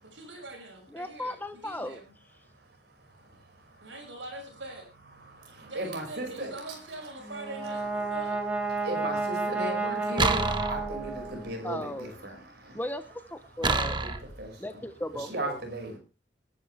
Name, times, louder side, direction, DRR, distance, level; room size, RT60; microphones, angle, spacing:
voice 1, 0.0-2.1 3.8-4.9 5.6-8.4, right 2 dB, 75° right, 6.6 m, -43 dB
voice 2, 0.9-2.0 11.6-12.3 12.7-14.0 14.6-15.6, left 1 dB, 10° left, 0.9 m, -36 dB
voice 3, 3.0-3.9 5.2-6.5 8.7-12.8 13.6-14.0 14.4-14.8 15.3-16.0, right 1 dB, 55° right, 5.7 m, -37 dB
Brass instrument, 7.2-11.7, right 3 dB, 5° right, 2.0 m, -31 dB
sound 1, 10.2-11.4 13.6-14.4, right 3 dB, 25° right, 1.1 m, -28 dB
21.0 x 11.5 x 3.4 m
head